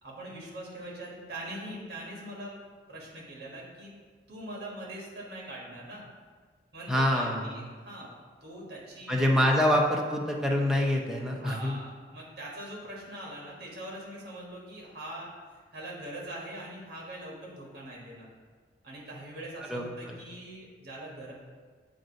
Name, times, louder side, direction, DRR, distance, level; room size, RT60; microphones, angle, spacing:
voice 1, 0.0-2.5 2.9-3.9 4.3-6.0 6.7-8.1 8.4-9.6 11.4-15.3 15.7-18.3 18.8-21.3, right 1 dB, 60° right, -4 dB, 1.5 m, -42 dB
voice 2, 6.9-7.6 9.1-11.8 19.7-20.1, left 1 dB, 5° right, -1 dB, 0.6 m, -26 dB
7.7 x 2.6 x 5.1 m, 1.5 s
head